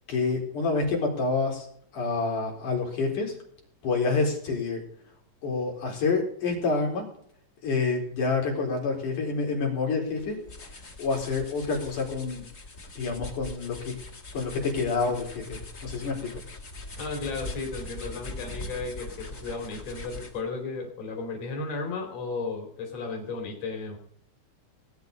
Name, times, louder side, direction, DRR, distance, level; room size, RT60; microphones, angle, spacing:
voice 1, 0.1-1.7 1.9-3.3 3.8-4.8 5.4-7.0 7.6-10.4 10.7-12.4 13.0-13.9 14.3-16.3, left 4 dB, 85° left, 0 dB, 5.6 m, -28 dB
sound 1, 10.1-20.5, left 2 dB, 30° left, 2.2 m, -41 dB
voice 2, 17.0-24.0, left 3 dB, 55° left, 2 dB, 4.1 m, -34 dB
18.5 x 9.7 x 5.4 m, 0.62 s
omnidirectional pair, 3.5 m